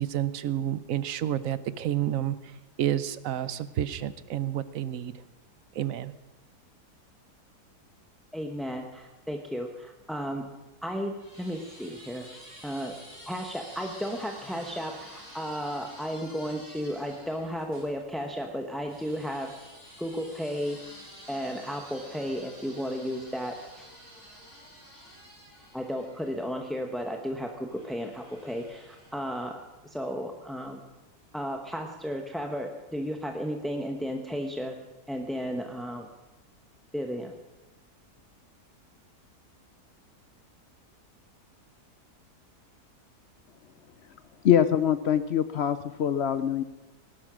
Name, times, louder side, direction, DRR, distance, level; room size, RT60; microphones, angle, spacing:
voice 1, 0.0-2.4 2.8-5.1 5.7-6.1, right 11 dB, 65° right, 16 dB, 1.0 m, -29 dB
voice 2, 8.3-10.5 10.8-12.3 12.6-13.0 13.3-19.5 20.0-21.0 21.3-23.9 25.7-30.8 31.3-34.8 35.1-36.1 36.9-37.3, equal, ahead, 3 dB, 0.7 m, -34 dB
sound 1, 10.5-17.9 18.9-26.8 27.7-29.3, equal, 80° left, 8.8 m, -50 dB
voice 3, 44.4-46.6, left 9 dB, 65° left, 12 dB, 0.6 m, -24 dB
18.5 x 12.0 x 6.2 m, 1.1 s
omnidirectional pair, 1.7 m